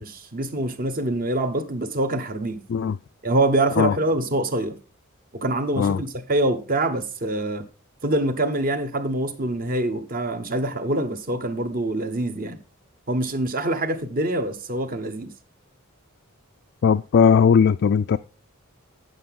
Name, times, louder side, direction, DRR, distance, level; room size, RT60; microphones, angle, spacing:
voice 1, 0.0-2.6 3.2-4.8 5.3-7.6 8.0-12.6 13.1-15.3, right 1 dB, 45° right, 1.1 m, -25 dB
voice 2, 16.8-18.2, left 6 dB, 55° left, 0.3 m, -18 dB
9.1 x 7.9 x 3.7 m
head